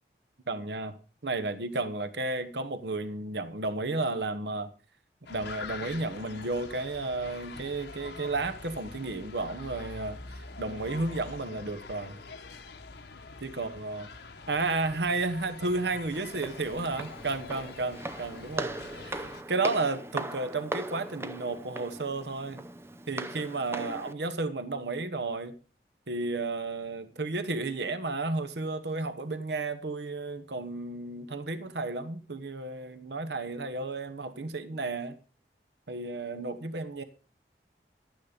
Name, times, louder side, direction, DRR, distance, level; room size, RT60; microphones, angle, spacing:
voice 1, 0.5-1.0 1.2-4.7 5.3-12.2 13.4-14.1 14.5-22.7 23.1-25.6 26.1-35.2 35.9-37.0, right 3 dB, 80° right, 1.1 m, -32 dB
sound 1, 5.3-19.4, left 3 dB, 80° left, 1.2 m, -45 dB
Walk footsteps, 16.1-24.1, right 2 dB, 15° right, 0.6 m, -39 dB
11.5 x 9.4 x 5.1 m
head